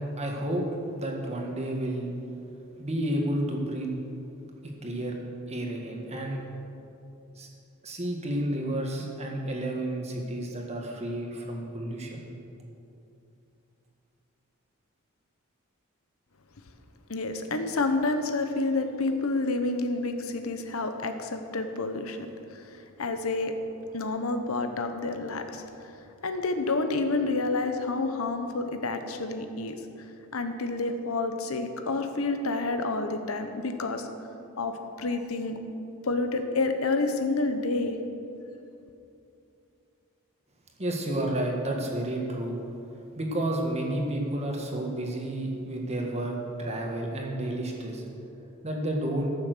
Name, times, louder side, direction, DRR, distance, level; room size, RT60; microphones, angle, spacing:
voice 1, 0.2-0.6 0.9-2.1 2.8-3.9 4.6-5.2 5.5-6.4 7.4-7.5 7.8-12.3 40.8-42.6 43.1-48.1 48.6-49.3, right 1 dB, 30° right, 0 dB, 1.8 m, -31 dB
voice 2, 17.1-22.6 23.0-23.5 23.9-25.6 26.2-29.8 30.3-34.1 34.6-35.6 36.0-37.9, left 3 dB, 85° left, 7 dB, 1.0 m, -29 dB
14.0 x 7.1 x 6.8 m, 2.7 s
head